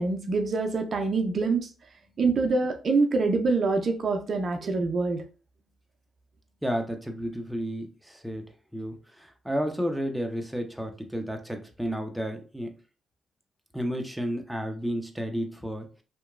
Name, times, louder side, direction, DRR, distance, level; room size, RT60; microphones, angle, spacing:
voice 1, 0.0-1.7 2.2-5.2, right 3 dB, 55° right, 4 dB, 0.5 m, -25 dB
voice 2, 6.6-8.4 8.7-12.7 13.7-15.9, equal, 5° right, 4 dB, 0.6 m, -32 dB
2.8 x 2.2 x 2.4 m, 0.35 s
supercardioid pair, 50°, 0 cm